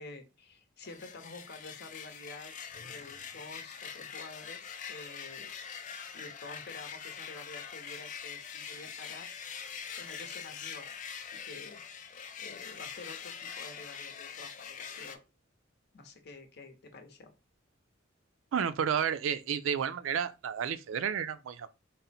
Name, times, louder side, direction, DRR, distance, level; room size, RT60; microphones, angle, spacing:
voice 1, 0.0-2.5 2.9-5.5 5.9-9.4 10.0-10.9 11.3-11.8 12.4-15.2 15.9-17.3, left 3 dB, 55° left, 0.8 m, -49 dB
sound 1, 0.8-15.2, left 7 dB, 40° left, 0.4 m, -44 dB
voice 2, 18.5-21.7, right 7 dB, 80° right, 0.4 m, -31 dB
3.8 x 2.0 x 4.1 m
head